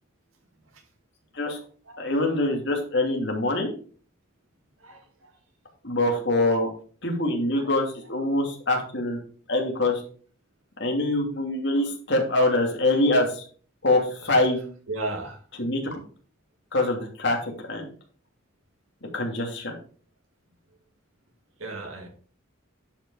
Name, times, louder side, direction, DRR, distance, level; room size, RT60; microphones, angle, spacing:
voice 1, 2.0-3.7 5.8-6.7 7.0-9.2 9.5-10.0 10.8-13.4 13.8-14.6 15.6-16.0 16.7-17.9 19.1-19.7, left 2 dB, 55° left, 1 dB, 2.8 m, -24 dB
voice 2, 14.9-15.4 21.6-22.1, right 2 dB, 80° right, 4 dB, 2.3 m, -33 dB
10.5 x 5.5 x 4.8 m, 0.42 s
head